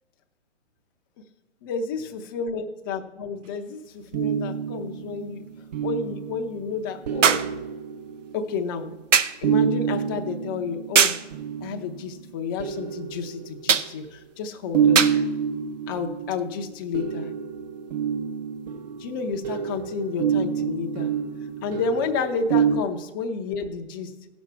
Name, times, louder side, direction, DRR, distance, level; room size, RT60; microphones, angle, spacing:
voice 1, 1.6-5.4 5.8-7.4 8.3-8.9 9.4-11.2 11.6-15.3 15.9-17.3 19.0-21.1 21.6-24.1, left 5 dB, 20° left, 5 dB, 0.5 m, -31 dB
sound 1, 3.4-3.5 7.2-7.6 9.1-9.4 11.0-11.3 13.7-13.9 15.0-15.2 16.3-16.4, right 7 dB, 80° right, 0.7 m, -20 dB
sound 2, 4.1-8.7 9.4-12.1 12.6-14.0 14.7-22.8, right 7 dB, 35° right, 0.5 m, -27 dB
16.0 x 6.2 x 4.4 m, 1.1 s
hypercardioid pair, 135°, 37 cm